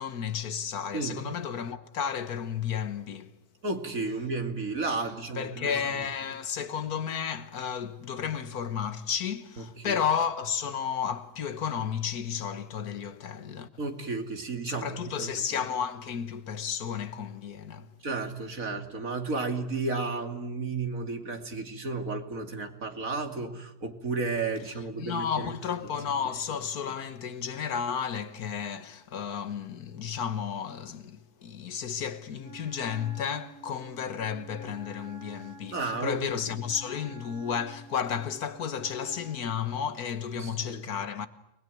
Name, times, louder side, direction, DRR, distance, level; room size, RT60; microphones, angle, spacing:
voice 1, 0.0-3.3 5.4-13.7 14.7-17.9 25.0-41.3, left 7 dB, 75° left, 1.8 m, -32 dB
voice 2, 0.9-1.2 3.6-5.9 9.6-10.0 13.8-15.3 18.0-25.5 35.7-36.2 40.3-40.8, right 3 dB, 60° right, 3.1 m, -33 dB
Wind instrument woodwind instrument, 32.4-39.6, right 2 dB, 35° right, 2.5 m, -49 dB
29.5 x 20.5 x 9.3 m
omnidirectional pair, 1.6 m